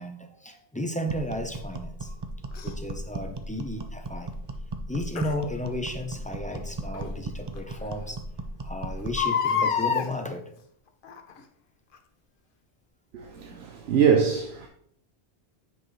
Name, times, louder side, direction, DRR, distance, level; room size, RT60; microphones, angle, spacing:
voice 1, 0.0-2.2 2.6-4.3 4.9-8.2 8.6-10.4 13.4-13.6, left 1 dB, 10° left, 0.6 m, -34 dB
sound 1, 1.1-9.3, right 2 dB, 35° right, 0.5 m, -36 dB
Crying sobbing, 2.5-2.7 5.2-5.3 6.9-7.0 7.6-7.7 7.9-8.0 9.0-10.1 11.0-11.4 11.9-12.0, left 7 dB, 60° left, 0.9 m, -26 dB
voice 2, 13.1-14.7, right 7 dB, 80° right, 1.0 m, -23 dB
9.3 x 5.2 x 3.1 m
omnidirectional pair, 1.1 m